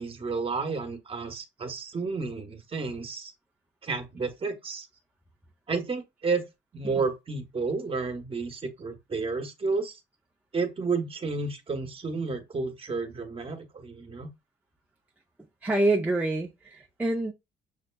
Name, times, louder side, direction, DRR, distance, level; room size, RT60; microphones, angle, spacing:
voice 1, 0.0-3.3 3.8-4.9 5.7-6.4 6.7-10.0 10.5-14.3, right 4 dB, 30° right, 1.0 m, -31 dB
voice 2, 15.6-17.3, right 2 dB, 10° right, 0.5 m, -26 dB
6.4 x 2.3 x 2.2 m
cardioid pair, 100°, 19 cm